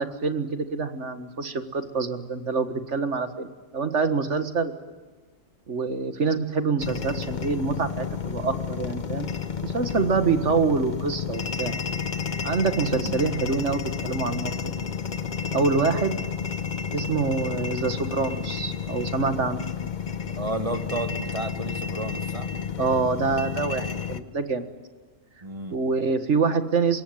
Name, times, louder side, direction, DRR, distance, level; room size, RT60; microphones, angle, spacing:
voice 1, 0.0-4.7 5.7-9.3 9.6-11.8 12.4-14.7 15.5-16.2 16.9-19.7 22.8-24.7 25.7-27.0, right 4 dB, 65° right, 10 dB, 2.0 m, -26 dB
sound 1, 6.8-24.2, left 6 dB, 40° left, 1.1 m, -31 dB
voice 2, 12.9-13.3 20.4-22.5 25.4-25.8, right 2 dB, 25° right, 9 dB, 1.7 m, -32 dB
25.5 x 21.0 x 9.3 m, 1.3 s
omnidirectional pair, 1.3 m